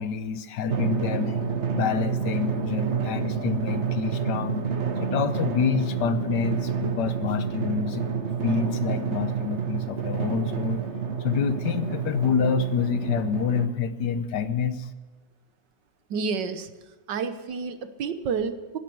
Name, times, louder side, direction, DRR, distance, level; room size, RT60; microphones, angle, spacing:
voice 1, 0.0-1.4 1.7-4.6 5.0-8.1 8.4-10.8 11.2-14.9, left 6 dB, 75° left, 12 dB, 1.5 m, -27 dB
Drum, 0.7-13.7, right 6 dB, 45° right, 1.2 m, -29 dB
voice 2, 16.1-16.7 17.1-18.8, right 5 dB, 85° right, 11 dB, 1.7 m, -29 dB
16.5 x 10.5 x 7.8 m, 1.2 s
omnidirectional pair, 1.9 m